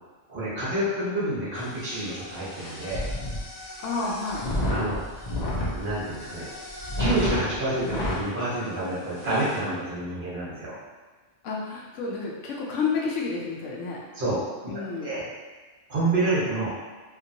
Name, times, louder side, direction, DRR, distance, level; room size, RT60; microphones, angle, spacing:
voice 1, 0.3-3.1 4.7-5.0 5.7-6.5 7.0-10.7 14.1-14.4 15.0-15.2 15.9-16.7, right 2 dB, 50° right, -8 dB, 1.0 m, -28 dB
sound 1, 1.6-8.2 8.8-8.9 9.1-9.6, left 1 dB, 45° left, 0.6 m, -31 dB
voice 2, 3.8-4.5 11.4-14.0 14.7-15.2, left 4 dB, 85° left, -3 dB, 1.0 m, -30 dB
2.9 x 2.5 x 2.6 m, 1.3 s
omnidirectional pair, 1.2 m